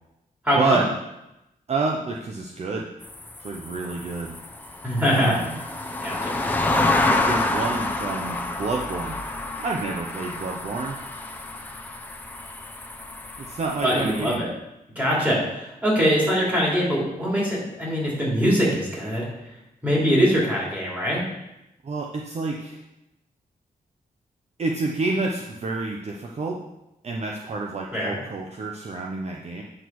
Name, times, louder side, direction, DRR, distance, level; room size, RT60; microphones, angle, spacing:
voice 1, 0.4-0.8 4.8-5.3 6.0-6.4 13.8-14.5 14.9-19.3 19.8-21.3 27.9-28.2, equal, 10° right, -5 dB, 3.0 m, -22 dB
voice 2, 1.7-2.9 3.4-4.4 5.1-5.6 7.1-11.0 13.4-14.4 21.8-22.8 24.6-26.6 27.0-29.6, right 3 dB, 45° right, 0 dB, 0.8 m, -29 dB
sound 1, 3.0-14.4, left 2 dB, 10° left, 0.7 m, -28 dB
8.7 x 6.2 x 4.7 m, 0.91 s
wide cardioid pair, 160°, 16 cm